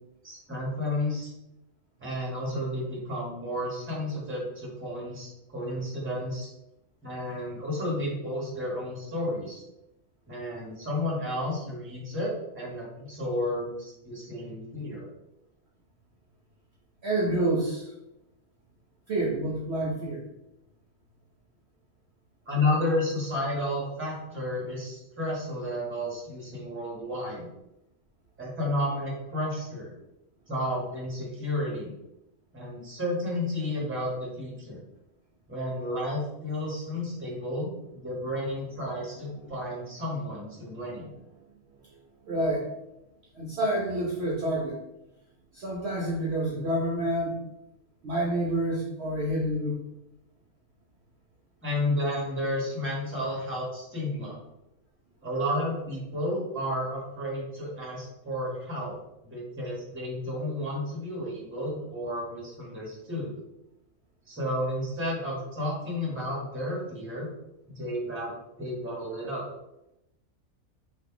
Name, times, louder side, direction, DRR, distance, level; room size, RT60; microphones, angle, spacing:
voice 1, 0.2-1.3 2.0-6.5 7.0-9.6 10.3-15.0 22.5-27.5 28.4-29.9 30.5-31.9 32.5-34.8 35.5-41.1 51.6-54.4 55.2-58.9 59.2-63.4 64.3-67.3 67.7-69.4, left 1 dB, 10° right, -5 dB, 1.0 m, -32 dB
voice 2, 17.0-17.9 19.1-20.2 39.3-39.4 42.3-42.7 43.3-44.8 45.5-47.3 48.0-49.8, right 1 dB, 60° right, -4 dB, 0.8 m, -28 dB
2.9 x 2.5 x 3.6 m, 0.88 s
omnidirectional pair, 1.5 m